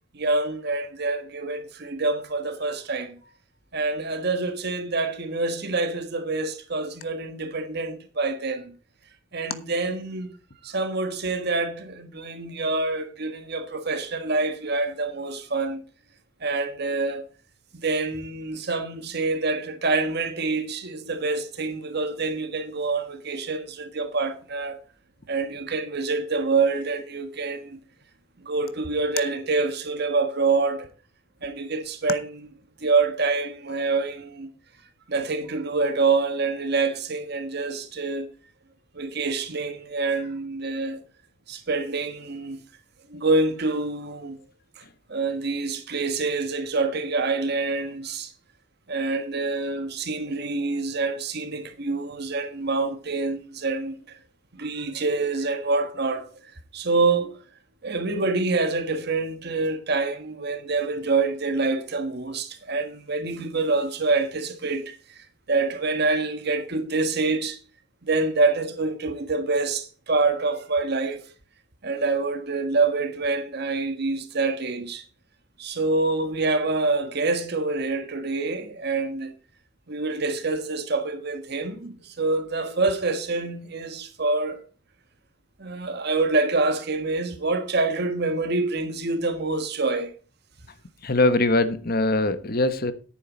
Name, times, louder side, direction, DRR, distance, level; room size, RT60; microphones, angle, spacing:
voice 1, 0.1-3.1 3.7-8.7 9.3-10.3 10.6-15.8 16.4-17.3 17.8-24.8 25.3-27.8 28.4-30.9 31.4-32.3 32.8-34.5 35.1-38.3 38.9-41.0 41.5-42.6 43.1-44.4 45.1-48.3 48.9-53.9 54.6-56.3 56.7-57.4 57.8-67.6 68.1-71.3 71.8-75.0 75.6-79.3 79.9-84.6 85.6-90.1, right 3 dB, 60° right, 1.4 m, -26 dB
voice 2, 91.0-92.9, left 2 dB, 50° left, 1.3 m, -22 dB
11.0 x 9.5 x 4.1 m
head